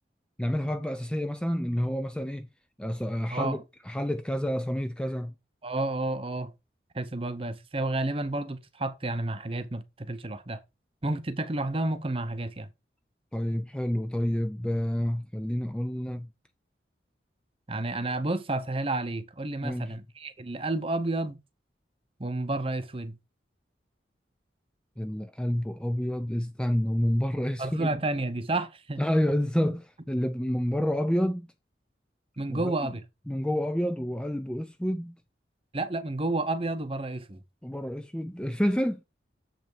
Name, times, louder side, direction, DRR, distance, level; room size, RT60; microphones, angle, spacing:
voice 1, 0.4-2.5 2.8-3.6 3.9-5.3 13.3-16.3 19.6-20.0 25.0-27.9 29.0-31.5 32.5-32.7 33.3-35.2 37.6-39.0, equal, 5° left, 0.4 m, -29 dB
voice 2, 3.3-3.6 5.6-6.5 6.9-10.6 11.0-12.7 17.7-21.4 22.2-23.2 27.6-29.0 32.4-33.0 35.7-37.4, right 2 dB, 30° right, 0.8 m, -31 dB
7.4 x 5.4 x 4.5 m
head